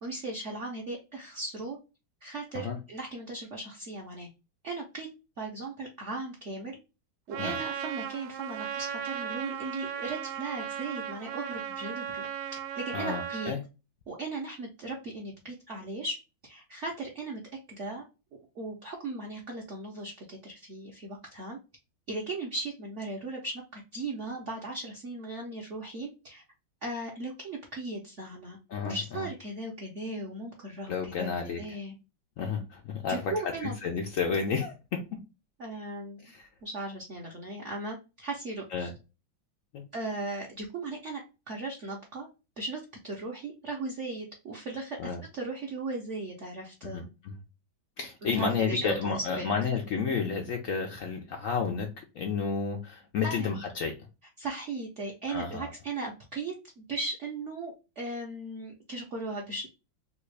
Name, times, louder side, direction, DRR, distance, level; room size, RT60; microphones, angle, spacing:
voice 1, 0.0-1.8 2.2-4.3 4.6-5.1 5.4-6.8 7.3-13.5 14.1-16.2 16.4-17.4 17.7-18.0 18.3-21.6 22.1-26.4 26.8-28.6 28.8-31.3 31.6-31.9 33.1-33.7 35.6-36.3 36.6-38.9 39.9-41.2 41.5-42.3 42.6-47.1 48.2-49.5 53.2-53.5 54.4-59.7, right 2 dB, 60° right, 0.8 m, -37 dB
Trumpet, 7.3-13.5, right 8 dB, 75° right, 1.1 m, -36 dB
voice 2, 12.9-13.6 28.7-29.3 30.9-31.6 32.4-33.3 33.6-35.0 36.2-36.5 38.7-38.9 39.7-39.8 45.0-45.2 46.8-47.3 48.0-51.9 52.2-53.9 55.3-55.7, left 5 dB, 90° left, 0.7 m, -31 dB
3.5 x 2.4 x 3.1 m
omnidirectional pair, 2.1 m